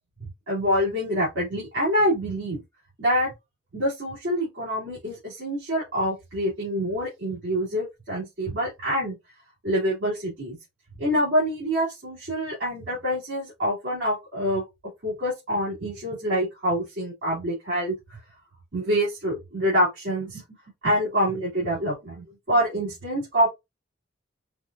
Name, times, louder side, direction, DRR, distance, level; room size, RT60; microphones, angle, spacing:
voice 1, 0.2-2.6 3.0-3.3 3.7-9.2 9.6-10.6 11.0-14.6 15.0-18.2 18.7-20.4 20.8-23.5, equal, 75° right, 2.3 m, -26 dB
5.1 x 2.3 x 2.6 m
head